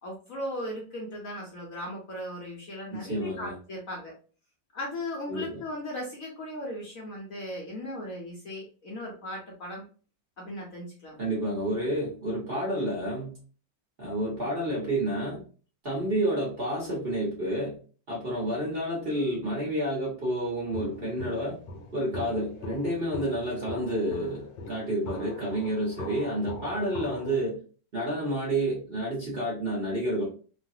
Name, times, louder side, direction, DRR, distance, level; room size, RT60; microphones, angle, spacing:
voice 1, 0.0-4.1 4.7-9.8 10.4-11.2, left 1 dB, 60° left, -2 dB, 1.0 m, -37 dB
voice 2, 2.9-3.5 5.3-5.6 11.2-13.4 14.0-15.4 15.8-17.8 18.1-21.6 21.9-27.6 27.9-30.3, right 1 dB, 40° right, -5 dB, 1.0 m, -30 dB
Walk footsteps, 20.7-27.4, left 2 dB, 75° left, 1.4 m, -41 dB
3.1 x 2.3 x 2.6 m, 0.38 s
omnidirectional pair, 2.0 m